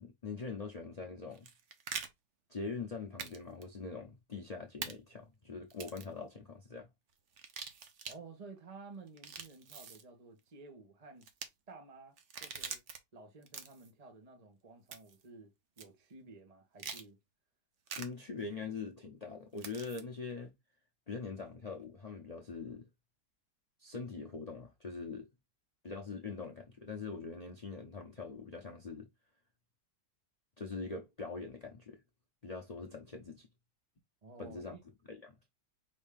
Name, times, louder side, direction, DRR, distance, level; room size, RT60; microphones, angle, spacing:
voice 1, 0.0-1.5 2.5-6.9 17.9-20.5 21.1-22.9 23.8-25.3 25.8-29.1 30.6-32.0 32.4-33.5 34.4-34.7 35.1-35.4, left 4 dB, 60° left, 0.4 m, -43 dB
sound 1, 1.3-2.1 3.2-3.4 3.6-3.7 4.8-4.9 5.7-6.1 7.3-8.2 9.1-10.0 11.2-11.5 12.2-13.0 13.4-13.9 14.9-15.2 15.8-15.9 16.8-17.0 17.9-18.1 19.6-20.0, right 6 dB, 55° right, 0.9 m, -44 dB
voice 2, 8.1-11.2 11.7-12.8 13.1-17.2 34.2-34.8, right 3 dB, 25° right, 1.0 m, -53 dB
5.4 x 2.6 x 3.5 m
omnidirectional pair, 1.8 m